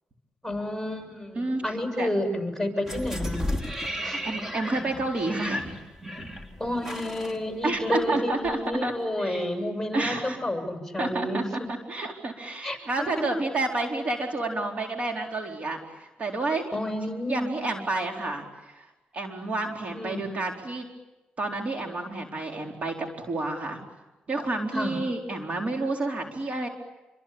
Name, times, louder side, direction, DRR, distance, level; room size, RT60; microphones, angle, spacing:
voice 1, 0.4-3.5 4.0-4.3 5.2-5.3 6.6-11.4 12.6-13.1 16.7-17.5 19.9-20.4 24.7-25.0, left 1 dB, 5° left, 4 dB, 7.2 m, -30 dB
voice 2, 1.4-2.1 3.9-5.7 7.6-8.9 9.2-9.5 9.9-10.4 11.0-16.7 17.3-20.9 21.4-23.8 24.3-26.7, right 2 dB, 45° right, 2 dB, 4.3 m, -30 dB
sound 1, 2.9-8.1 8.4-8.5, left 1 dB, 15° right, 4.0 m, -34 dB
27.5 x 24.5 x 8.8 m, 1.0 s
cardioid pair, 80°, 3 cm